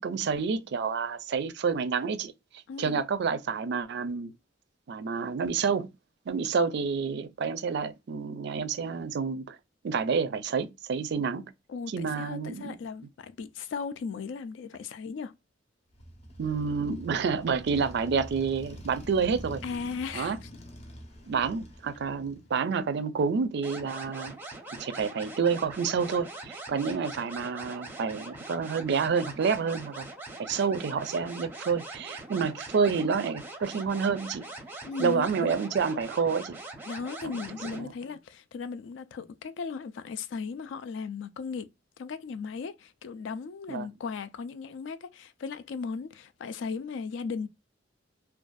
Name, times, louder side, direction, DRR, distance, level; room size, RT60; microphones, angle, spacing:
voice 1, 0.0-2.3 2.8-4.3 4.9-5.9 6.3-9.6 9.8-11.5 11.9-12.8 16.4-19.6 20.1-20.4 21.2-24.3 24.7-30.1 30.4-34.5 35.0-36.6 37.2-37.4 37.7-37.9 43.7-43.9, right 5 dB, 65° right, 0.4 m, -29 dB
voice 2, 2.7-3.0 11.7-15.3 19.6-20.5 34.9-35.5 36.9-41.7 42.0-47.5, left 5 dB, 70° left, 0.3 m, -37 dB
Motorcycle, 15.9-22.6, equal, 35° left, 0.7 m, -45 dB
sound 1, 23.6-37.8, right 2 dB, 10° right, 0.6 m, -43 dB
2.5 x 2.3 x 2.2 m
head